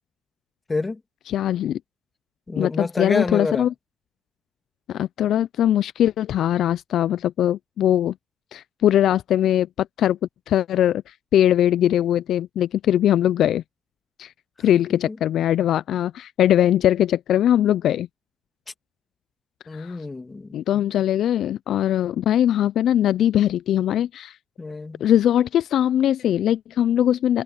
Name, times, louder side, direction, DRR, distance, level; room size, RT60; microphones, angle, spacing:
voice 1, 0.7-1.0 2.5-3.7 14.9-15.2 19.7-20.5 24.6-25.0, left 3 dB, 25° left, 2.5 m, -28 dB
voice 2, 1.3-1.8 2.6-3.7 4.9-8.1 8.5-10.2 10.5-13.6 14.2-14.3 14.6-18.1 19.7-20.0 20.5-24.4 25.0-27.4, left 11 dB, 75° left, 0.3 m, -21 dB
cardioid pair, 90°, 0 cm